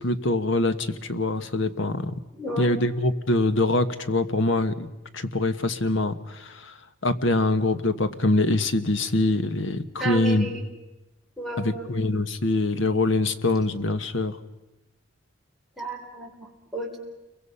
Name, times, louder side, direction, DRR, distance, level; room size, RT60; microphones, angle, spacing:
voice 1, 0.0-2.2 2.6-4.9 5.1-6.7 7.0-10.5 11.6-14.4, left 2 dB, 65° left, 11 dB, 1.3 m, -24 dB
voice 2, 2.3-2.8 10.0-10.6 11.4-11.9 15.8-17.0, right 1 dB, ahead, -3 dB, 4.2 m, -33 dB
29.5 x 23.5 x 5.6 m, 1.0 s
head